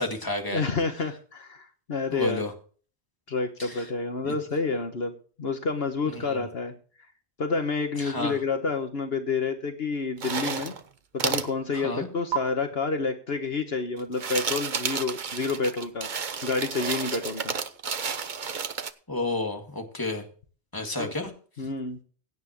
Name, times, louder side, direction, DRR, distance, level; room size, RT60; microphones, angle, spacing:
voice 1, 0.0-0.6 2.1-2.5 3.6-3.9 4.2-4.3 6.1-6.4 8.0-8.4 11.7-12.1 19.1-20.2 20.7-21.3, left 2 dB, 20° left, 2 dB, 2.3 m, -31 dB
voice 2, 0.5-2.4 3.3-5.1 5.4-6.7 7.4-10.7 11.1-16.1 16.4-17.5 21.0-21.1 21.6-22.0, left 4 dB, 65° left, 6 dB, 1.5 m, -29 dB
sound 1, 10.2-10.8 11.2-11.5 12.3-12.4 14.0-18.9, right 6 dB, 45° right, 1.0 m, -31 dB
17.0 x 9.5 x 3.1 m, 0.40 s
omnidirectional pair, 1.1 m